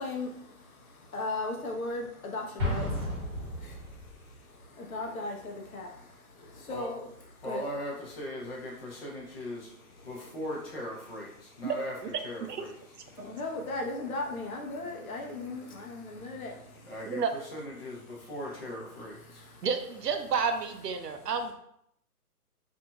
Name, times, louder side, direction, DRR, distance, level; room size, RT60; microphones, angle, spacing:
voice 1, 0.0-7.1 7.4-7.6 10.0-10.1 13.0-16.9 19.2-19.7 21.0-21.3, left 2 dB, 65° left, 1 dB, 1.0 m, -38 dB
Explosion, 2.6-4.3, left 1 dB, 10° right, 1.2 m, -33 dB
voice 2, 3.5-4.4 5.9-6.0 6.7-6.9 7.4-9.7 10.0-12.7 13.1-13.4 16.9-19.6, left 1 dB, 40° left, -3 dB, 1.1 m, -40 dB
voice 3, 19.6-21.5, right 5 dB, 90° right, 7 dB, 0.7 m, -30 dB
5.0 x 2.8 x 2.3 m, 0.74 s
hypercardioid pair, 170°, 46 cm